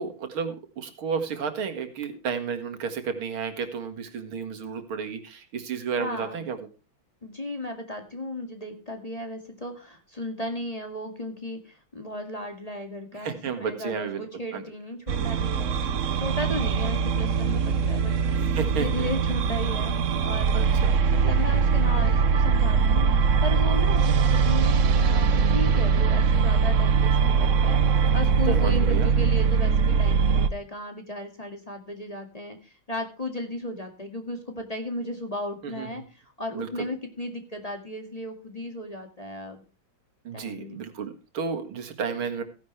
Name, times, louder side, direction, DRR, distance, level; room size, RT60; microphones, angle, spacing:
voice 1, 0.0-6.6 13.2-14.2 14.5-14.6 18.3-19.1 20.5-21.0 28.3-29.1 35.6-35.9 36.5-36.7 40.2-42.4, right 6 dB, 80° right, 7 dB, 2.6 m, -32 dB
voice 2, 6.0-6.5 7.2-18.4 18.7-39.6 40.3-40.8 42.1-42.2, left 1 dB, 20° left, 5 dB, 2.0 m, -35 dB
sound 1, 15.1-30.5, right 5 dB, 60° right, 0.8 m, -22 dB
16.0 x 10.5 x 3.3 m, 0.32 s
omnidirectional pair, 2.3 m